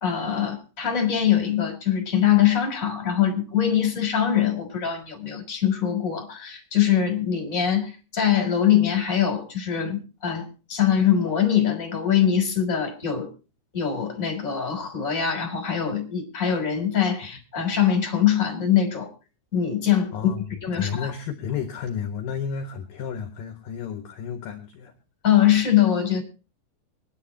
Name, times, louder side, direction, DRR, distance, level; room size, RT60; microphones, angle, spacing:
voice 1, 0.0-13.3 13.7-19.1 19.5-20.3 20.6-21.1 25.2-26.2, left 9 dB, 20° left, 3 dB, 3.3 m, -23 dB
voice 2, 20.1-24.9, left 7 dB, 65° left, 5 dB, 2.6 m, -32 dB
25.0 x 10.5 x 2.9 m, 0.33 s
omnidirectional pair, 5.2 m